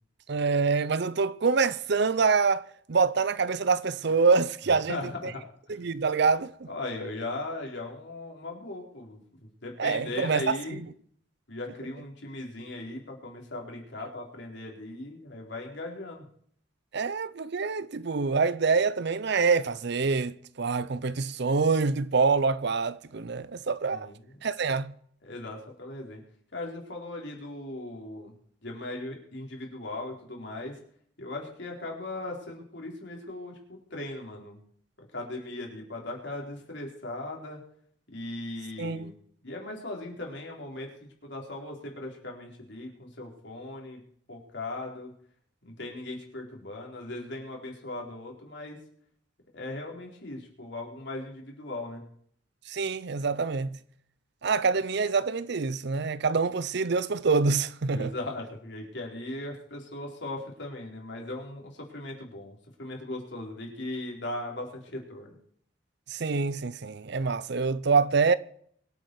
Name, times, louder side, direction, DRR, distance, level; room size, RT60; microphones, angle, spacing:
voice 1, 0.3-2.6 2.9-5.3 5.7-6.7 9.8-10.8 16.9-24.1 24.4-24.9 38.8-39.1 52.7-53.8 54.4-58.1 66.1-68.4, right 4 dB, 55° right, 0.6 m, -26 dB
voice 2, 4.7-5.4 5.7-5.8 6.7-9.2 9.6-10.8 11.5-16.2 23.9-24.2 25.3-26.2 26.5-28.3 28.6-30.8 31.2-34.6 35.1-37.6 38.1-39.1 39.4-44.0 44.3-45.1 45.6-48.8 49.5-52.0 57.9-65.4, left 2 dB, 60° left, 4.2 m, -38 dB
24.0 x 8.5 x 4.8 m
head